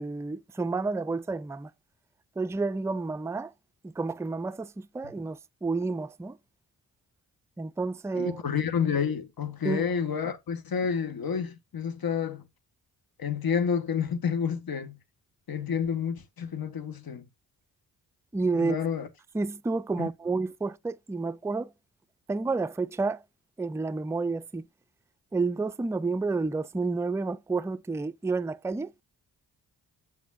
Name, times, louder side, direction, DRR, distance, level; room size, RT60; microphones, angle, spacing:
voice 1, 0.0-1.7 2.4-3.5 3.8-6.4 7.6-8.4 9.6-9.8 18.3-18.8 19.3-21.7 22.3-23.2 23.6-24.7 25.3-28.9, right 3 dB, 5° right, 0.5 m, -30 dB
voice 2, 8.1-12.4 13.2-15.0 15.5-17.2 18.6-19.1 20.0-20.1, left 7 dB, 55° left, 1.5 m, -29 dB
7.8 x 7.3 x 2.6 m
supercardioid pair, 45°, 44 cm